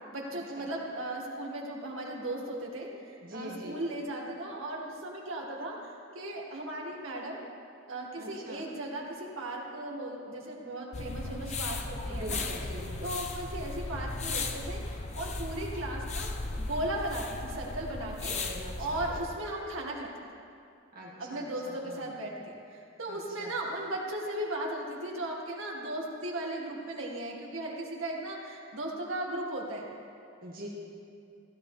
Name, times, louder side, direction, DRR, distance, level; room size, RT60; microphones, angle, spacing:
voice 1, 0.1-7.4 7.9-12.5 13.0-20.1 21.2-29.9, right 1 dB, 80° right, -2 dB, 1.8 m, -37 dB
voice 2, 3.2-3.8 8.2-8.6 12.1-12.9 18.3-19.0 20.9-22.0 23.1-23.5 30.4-30.7, equal, 45° right, -3 dB, 1.9 m, -44 dB
sound 1, 10.9-19.2, left 3 dB, 35° left, 0.7 m, -36 dB
15.5 x 12.0 x 3.3 m, 2.5 s
head